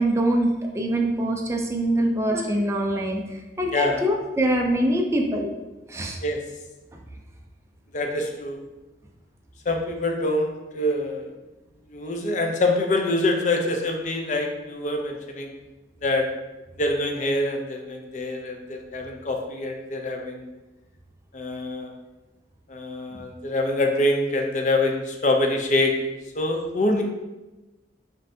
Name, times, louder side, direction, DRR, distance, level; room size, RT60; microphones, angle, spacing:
voice 1, 0.0-5.5 5.9-6.2, right 1 dB, 15° right, 0 dB, 0.4 m, -24 dB
voice 2, 3.6-4.0 6.2-6.4 7.9-8.6 9.7-11.3 11.9-15.5 16.0-16.3 16.8-20.5 21.3-21.9 22.7-25.9 26.4-27.0, left 2 dB, 45° left, 3 dB, 0.5 m, -25 dB
5.3 x 2.6 x 2.6 m, 1.1 s
head